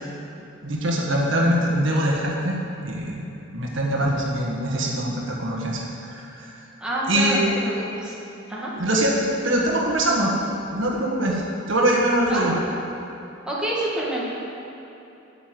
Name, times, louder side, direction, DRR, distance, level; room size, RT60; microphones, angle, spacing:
voice 1, 0.6-2.6 2.8-3.2 3.5-6.5 7.1-7.4 8.8-12.5, right 1 dB, 65° right, -2 dB, 1.6 m, -23 dB
voice 2, 6.8-8.2 8.5-8.7 12.3-12.6 13.5-14.2, right 1 dB, 5° right, -6 dB, 1.9 m, -27 dB
9.6 x 6.8 x 7.8 m, 3.0 s
head